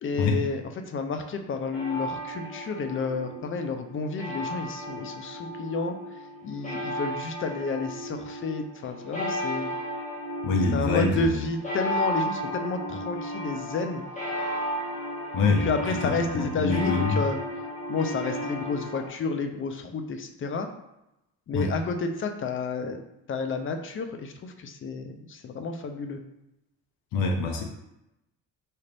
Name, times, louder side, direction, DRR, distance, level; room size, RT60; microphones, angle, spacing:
voice 1, 0.0-6.0 6.4-9.7 10.7-14.0 15.5-17.4 17.9-20.7 21.5-23.0 23.3-26.2, left 4 dB, 35° left, 6 dB, 0.5 m, -30 dB
sound 1, 1.7-19.1, equal, 20° left, 1.4 m, -34 dB
voice 2, 10.4-11.4 15.3-15.7 16.0-17.2 21.5-21.7 27.1-27.6, left 3 dB, 70° left, 1 dB, 0.7 m, -25 dB
4.2 x 2.5 x 3.3 m, 0.89 s
cardioid pair, 90°, 35 cm